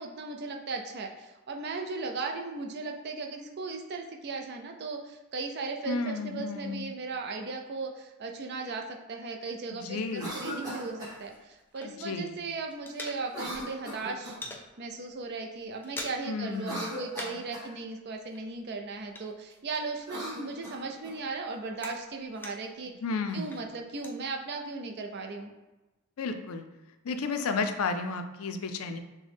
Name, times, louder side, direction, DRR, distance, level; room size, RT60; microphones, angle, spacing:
voice 1, 0.0-14.4 14.8-22.9 23.3-25.5, right 3 dB, 50° right, 3 dB, 0.5 m, -37 dB
voice 2, 5.9-6.9 9.7-10.5 11.8-12.4 16.2-16.9 23.0-23.6 26.2-26.6 27.0-29.0, left 4 dB, 70° left, 7 dB, 0.4 m, -33 dB
Cough, 10.1-11.2 13.3-14.5 16.4-17.7 19.9-21.2, equal, 15° right, 1.2 m, -39 dB
sound 1, 10.8-12.3 12.5-13.7 13.9-14.7 15.1-15.3 15.5-16.4 16.7-17.6 17.8-20.1 20.5-22.8 23.3-24.2, left 1 dB, 10° left, 0.4 m, -45 dB
6.2 x 2.2 x 3.5 m, 1.1 s
head